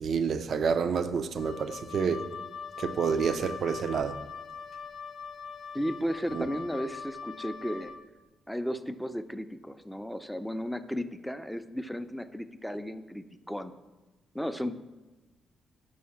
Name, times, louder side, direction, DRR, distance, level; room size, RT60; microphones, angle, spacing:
voice 1, 0.0-2.3 2.8-4.2 6.3-6.5, right 6 dB, 60° right, 11 dB, 0.5 m, -28 dB
Wind instrument woodwind instrument, 1.3-8.0, left 6 dB, 65° left, 0.5 m, -42 dB
voice 2, 5.7-7.9 8.5-13.7 14.3-14.7, equal, ahead, 10 dB, 0.5 m, -34 dB
6.3 x 4.7 x 5.8 m, 1.1 s
supercardioid pair, 60°, 0 cm